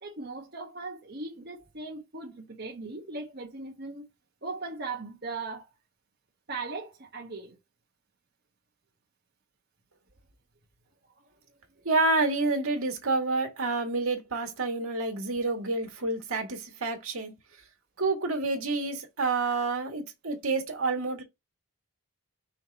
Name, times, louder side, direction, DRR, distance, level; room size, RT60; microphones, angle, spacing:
voice 1, 0.0-4.1 4.4-5.7 6.5-7.6 11.2-11.3, right 3 dB, 45° right, 1.2 m, -38 dB
voice 2, 11.8-17.3 18.0-21.2, right 3 dB, 75° right, 1.9 m, -28 dB
5.7 x 3.1 x 5.4 m
head